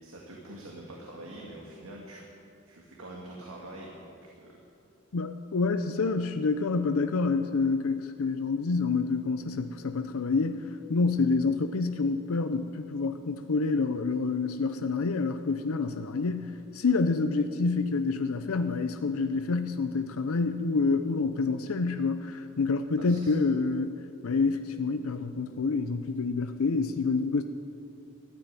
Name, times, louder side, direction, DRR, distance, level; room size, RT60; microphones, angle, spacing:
voice 1, 0.0-2.2 2.7-4.6 23.0-23.3, right 1 dB, 85° right, -2 dB, 2.0 m, -45 dB
voice 2, 5.1-27.4, left 4 dB, 85° left, 9 dB, 0.6 m, -28 dB
13.0 x 10.5 x 9.5 m, 2.6 s
head